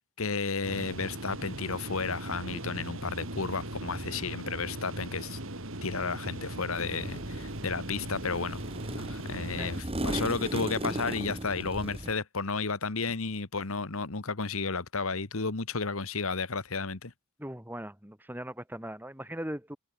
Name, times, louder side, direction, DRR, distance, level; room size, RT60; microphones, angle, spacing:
voice 1, 0.2-5.4 5.8-8.6 8.9-17.1, left 4 dB, 70° left, 1.5 m, -32 dB
sound 1, 0.6-9.8, right 1 dB, 65° right, 3.9 m, -39 dB
sound 2, 6.8-12.1, right 1 dB, 25° right, 1.9 m, -37 dB
voice 2, 17.4-19.8, right 1 dB, 10° right, 3.7 m, -39 dB
head